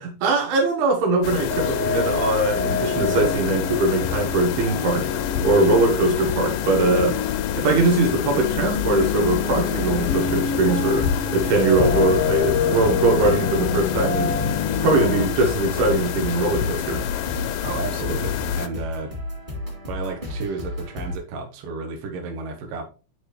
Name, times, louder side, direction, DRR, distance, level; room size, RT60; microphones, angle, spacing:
voice 1, 0.0-5.1 5.4-7.2 7.5-14.3 14.8-17.0, right 2 dB, 85° right, 3.9 m, -21 dB
sound 1, 1.2-18.7, left 11 dB, 85° left, 2.0 m, -28 dB
sound 2, 1.5-15.2, left 5 dB, 55° left, 1.7 m, -27 dB
sound 3, 9.8-21.2, left 1 dB, 15° right, 2.0 m, -33 dB
voice 2, 17.6-19.1 19.9-22.9, right 4 dB, 65° right, 2.7 m, -32 dB
10.5 x 4.8 x 3.2 m
omnidirectional pair, 4.4 m